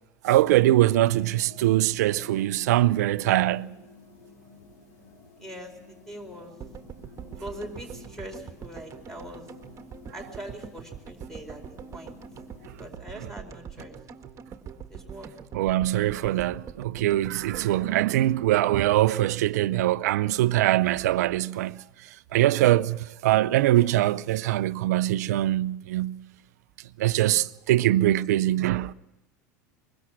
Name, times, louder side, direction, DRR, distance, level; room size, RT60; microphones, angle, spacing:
voice 1, 0.2-3.7 15.5-21.8 22.3-26.2 27.0-28.9, right 14 dB, 65° right, 0.6 m, -23 dB
sound 1, 0.7-12.9, left 4 dB, 65° left, 5.5 m, -52 dB
voice 2, 5.4-6.5 7.4-9.5 10.1-12.2 12.8-14.0 14.9-15.3, right 1 dB, 5° left, 4.7 m, -42 dB
sound 2, 6.6-18.8 19.1-19.2 19.3-19.4, right 7 dB, 30° right, 1.7 m, -44 dB
23.5 x 21.5 x 6.0 m
figure-of-eight pair, 80°, 9 cm